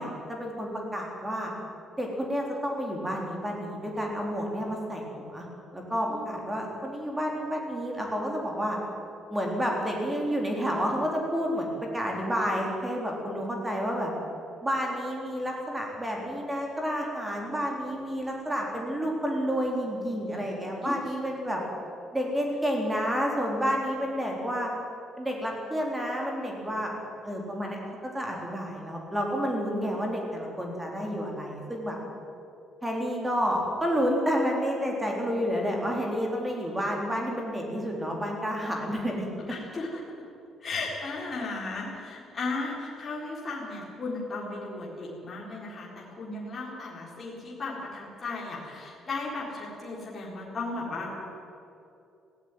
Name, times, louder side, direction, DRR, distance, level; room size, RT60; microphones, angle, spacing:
voice 1, 0.0-1.5 2.0-5.5 5.7-8.8 9.3-14.1 14.6-21.6 22.1-24.7 25.2-26.9 27.2-32.0 32.8-39.3, equal, 10° right, 0 dB, 3.9 m, -30 dB
voice 2, 39.4-40.2 40.6-51.2, left 3 dB, 25° left, -4 dB, 4.1 m, -35 dB
19.0 x 16.0 x 9.3 m, 2.8 s
cardioid pair, 170°, 0 cm